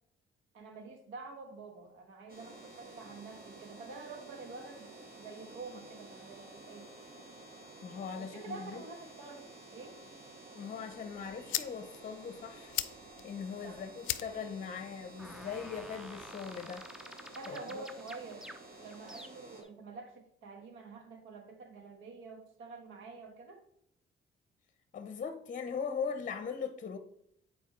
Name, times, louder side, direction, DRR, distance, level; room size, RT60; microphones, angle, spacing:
voice 1, 0.5-6.9 8.2-10.0 13.6-13.8 17.3-23.6, right 3 dB, 85° right, 1.4 m, -48 dB
sound 1, 2.3-19.6, right 2 dB, 50° right, 1.7 m, -52 dB
voice 2, 7.8-8.8 10.5-12.8 13.2-16.9 17.5-17.9 24.9-27.0, left 6 dB, 40° left, 0.7 m, -40 dB
sound 2, 10.9-16.9, left 14 dB, 80° left, 0.4 m, -42 dB
sound 3, 15.2-19.7, equal, 5° right, 0.5 m, -50 dB
9.1 x 4.6 x 3.2 m
cardioid pair, 90°, 20 cm